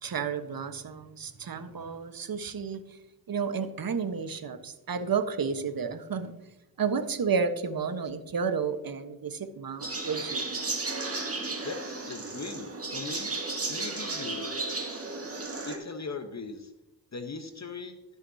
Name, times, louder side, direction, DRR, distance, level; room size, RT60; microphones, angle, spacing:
voice 1, 0.0-2.8 3.3-6.3 6.8-10.4, right 5 dB, 45° right, 9 dB, 1.3 m, -31 dB
sound 1, 9.8-15.8, right 3 dB, 30° right, 2.2 m, -34 dB
voice 2, 11.6-13.3 13.7-14.5 15.6-16.7 17.1-18.0, left 4 dB, 35° left, 8 dB, 1.1 m, -39 dB
16.5 x 6.5 x 2.8 m, 0.96 s
hypercardioid pair, 40°, 48 cm